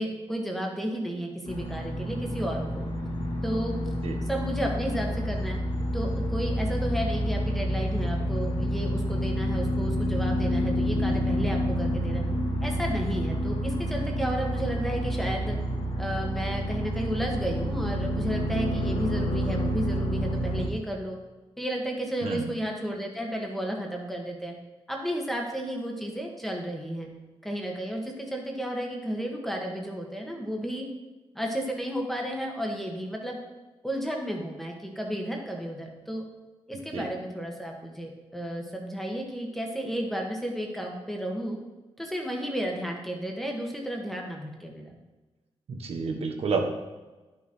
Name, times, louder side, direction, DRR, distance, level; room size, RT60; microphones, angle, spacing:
voice 1, 0.0-2.8 3.4-3.8 4.3-5.6 5.9-12.2 12.6-15.6 16.0-21.2 21.6-24.5 24.9-27.1 27.4-30.9 31.3-33.4 33.8-36.2 36.7-41.6 42.0-45.0, equal, ahead, 0 dB, 1.4 m, -32 dB
sound 1, 1.5-20.7, equal, 65° left, 2.3 m, -28 dB
voice 2, 22.2-22.5 36.9-37.1 45.7-46.7, right 4 dB, 75° right, 3 dB, 1.3 m, -29 dB
11.5 x 6.2 x 4.4 m, 1.2 s
wide cardioid pair, 150°, 10 cm